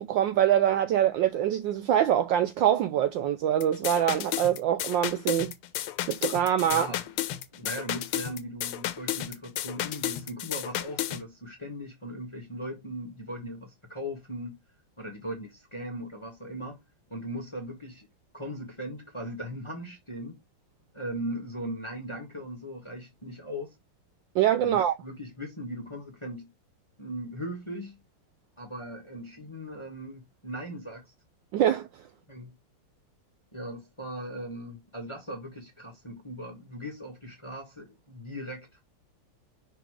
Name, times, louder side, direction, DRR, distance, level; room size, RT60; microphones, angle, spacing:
voice 1, 0.0-5.5 6.1-6.9 24.3-25.0 31.5-31.9, right 10 dB, 75° right, 1.1 m, -24 dB
sound 1, 3.6-11.2, left 13 dB, 80° left, 1.6 m, -33 dB
voice 2, 6.6-7.0 7.5-14.5 15.0-16.8 17.1-18.1 18.3-20.4 20.9-23.7 24.6-26.5 27.0-28.0 28.6-31.1 32.3-32.5 33.5-38.8, equal, 20° left, 1.0 m, -38 dB
5.5 x 4.2 x 4.7 m
omnidirectional pair, 2.4 m